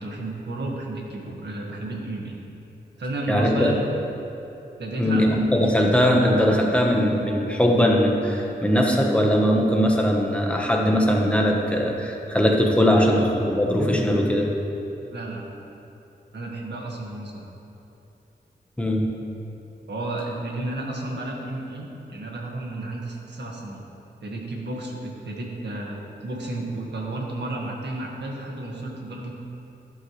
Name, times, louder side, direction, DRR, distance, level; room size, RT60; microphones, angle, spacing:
voice 1, 0.0-2.4 3.0-3.8 4.8-5.3 12.9-13.2 15.1-15.5 16.3-17.4 19.9-23.8 24.2-29.3, right 2 dB, 75° right, -1 dB, 1.7 m, -32 dB
voice 2, 3.3-3.7 5.0-14.5 15.0-15.1 18.8-19.1, equal, 5° left, -1 dB, 1.1 m, -20 dB
12.0 x 11.5 x 3.2 m, 2.9 s
wide cardioid pair, 175°, 18 cm